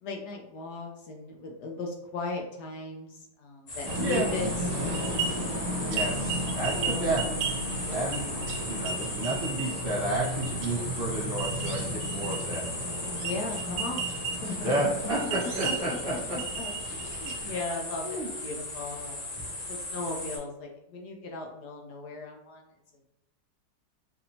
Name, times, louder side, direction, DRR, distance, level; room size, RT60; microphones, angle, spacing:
voice 1, 0.0-5.9 6.7-7.1 7.8-8.1 13.2-14.7 15.6-15.7 16.6-19.2 19.5-22.6, left 3 dB, 75° left, 1 dB, 1.1 m, -37 dB
sound 1, 3.7-20.4, left 2 dB, 50° left, 1.3 m, -37 dB
sound 2, 3.9-17.6, right 2 dB, 75° right, 1.2 m, -33 dB
voice 2, 5.9-7.2 7.9-8.3 8.7-12.6 14.6-16.1 17.3-17.5 18.0-18.3, right 2 dB, 45° right, -6 dB, 1.4 m, -31 dB
4.1 x 2.7 x 2.8 m, 0.88 s
omnidirectional pair, 1.9 m